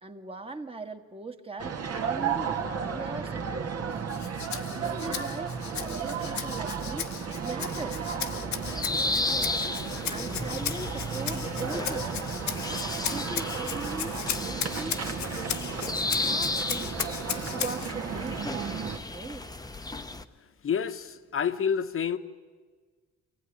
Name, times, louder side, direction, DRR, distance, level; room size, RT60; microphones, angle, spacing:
voice 1, 0.0-3.9 4.7-7.1 7.4-8.1 10.1-12.3 13.1-15.6 15.9-17.0 17.5-18.8 19.1-19.5, right 3 dB, 20° right, 1.6 m, -40 dB
sound 1, 1.6-19.0, right 6 dB, 55° right, 1.8 m, -34 dB
Rattle (instrument), 4.1-17.9, left 9 dB, 65° left, 1.2 m, -37 dB
sound 2, 8.7-20.2, left 2 dB, 10° left, 0.9 m, -34 dB
voice 2, 20.4-22.2, left 7 dB, 45° left, 1.2 m, -29 dB
24.0 x 16.0 x 9.9 m
cardioid pair, 90°, 30 cm